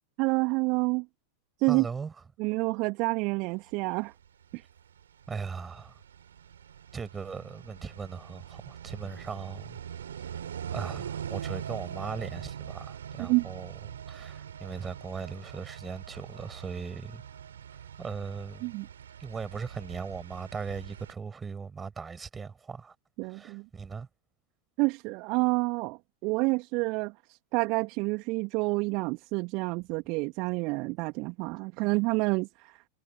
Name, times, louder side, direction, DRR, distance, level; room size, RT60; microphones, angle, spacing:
voice 1, 0.2-1.0 1.6-1.8 2.4-4.1 4.5-4.6 13.2-13.5 18.6-18.9 23.2-23.6 24.8-27.1 27.5-32.8, right 27 dB, 40° right, 2.6 m, -28 dB
voice 2, 1.7-2.1 5.3-6.0 6.9-9.8 10.2-10.3 10.7-17.2 17.7-18.7 19.2-22.9 23.3-24.1, right 5 dB, 15° right, 7.9 m, -39 dB
sound 1, 4.5-21.1, right 9 dB, 65° right, 4.3 m, -42 dB
figure-of-eight pair, 90°, 0 cm